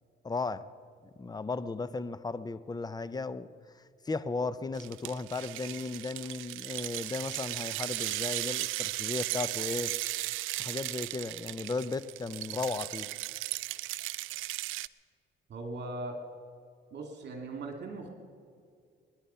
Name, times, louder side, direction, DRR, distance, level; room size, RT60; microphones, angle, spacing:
voice 1, 0.2-0.7 1.2-3.5 4.0-9.9 10.6-13.1, left 3 dB, 20° left, 15 dB, 0.7 m, -35 dB
sound 1, 4.8-14.9, right 17 dB, 85° right, 0.4 m, -36 dB
voice 2, 15.5-16.2 16.9-18.1, right 2 dB, 60° right, 4 dB, 2.5 m, -39 dB
23.5 x 10.5 x 5.7 m, 2.2 s
cardioid pair, 90°, 20 cm